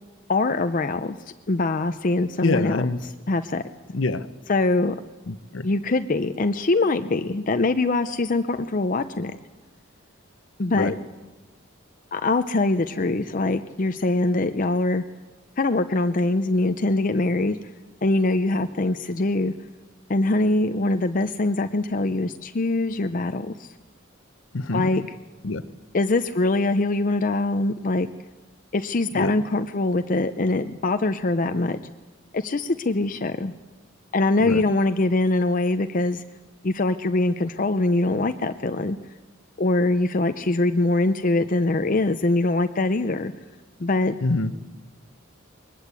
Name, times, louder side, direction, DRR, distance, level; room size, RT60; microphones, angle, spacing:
voice 1, 0.3-1.2 1.5-3.6 4.5-5.0 5.6-9.4 10.6-10.9 12.1-15.0 15.6-17.6 18.0-19.5 20.1-23.7 24.7-25.0 25.9-28.1 28.7-31.8 32.3-33.5 34.1-36.2 36.6-39.0 39.6-43.3 43.8-44.1, left 2 dB, 40° left, 8 dB, 0.6 m, -23 dB
voice 2, 2.4-3.0 3.9-4.3 5.3-5.7 10.7-10.9 24.5-24.8 25.4-25.6 29.1-29.3 34.4-34.6 44.2-44.5, left 3 dB, 75° left, 11 dB, 0.9 m, -25 dB
22.0 x 19.5 x 8.3 m, 1.3 s
head